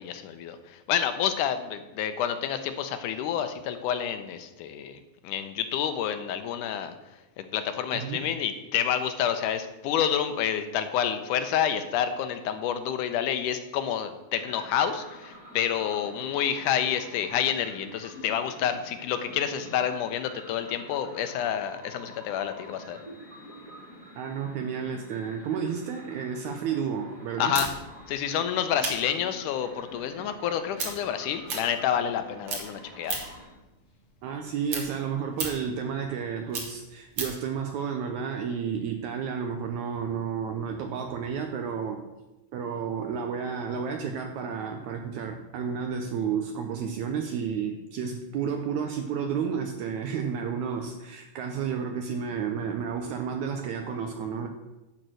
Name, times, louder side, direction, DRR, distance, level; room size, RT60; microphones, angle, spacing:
voice 1, 0.0-5.0 5.2-7.0 7.4-23.0 27.4-27.7 28.1-33.2, left 9 dB, 80° left, 9 dB, 2.0 m, -29 dB
voice 2, 7.9-8.3 24.2-27.6 34.2-42.0 42.5-54.5, right 7 dB, 75° right, 5 dB, 1.8 m, -31 dB
sound 1, 14.3-33.5, equal, 25° right, 2.4 m, -48 dB
sound 2, 27.5-32.2 32.5-33.5 33.9-37.5, right 4 dB, 50° right, 2.3 m, -35 dB
11.0 x 4.3 x 7.6 m, 1.0 s
omnidirectional pair, 3.8 m